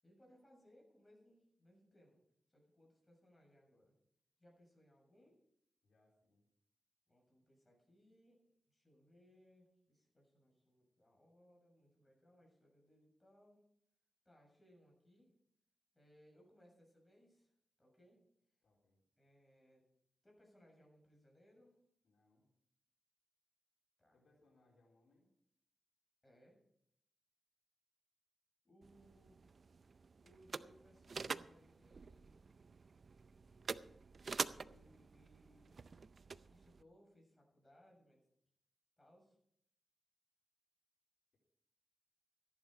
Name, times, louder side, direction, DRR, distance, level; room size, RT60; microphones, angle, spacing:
voice 1, 0.0-2.2 2.5-3.9 4.4-5.4 7.1-13.6 14.2-15.3 15.9-17.5 17.8-18.2 19.2-19.8 20.2-21.8 24.0-24.2 26.2-26.6 28.6-29.4 30.2-32.4 34.6-36.1 36.5-38.2 39.0-39.4, equal, 15° left, -1 dB, 7.1 m, -68 dB
voice 2, 5.8-6.5 18.6-19.0 22.0-22.5 24.1-25.3, left 2 dB, 80° left, -2 dB, 4.0 m, -74 dB
sound 1, 28.8-36.8, right 4 dB, 55° right, 0.5 m, -47 dB
14.5 x 11.0 x 5.1 m, 0.73 s
wide cardioid pair, 85°, 0 cm